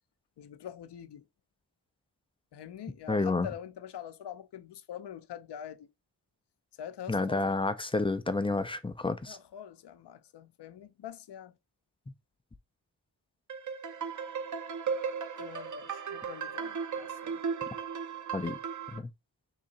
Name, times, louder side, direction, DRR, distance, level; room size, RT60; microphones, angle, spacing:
voice 1, 0.4-1.2 2.5-5.9 6.8-7.5 9.3-11.6 15.4-17.4, left 9 dB, 70° left, 0.6 m, -44 dB
voice 2, 3.1-3.5 7.1-9.4 18.3-18.6 18.9-19.1, left 3 dB, 15° left, 0.3 m, -30 dB
sound 1, 13.5-19.0, right 6 dB, 45° right, 0.6 m, -36 dB
3.6 x 2.8 x 3.9 m
wide cardioid pair, 125°, 43 cm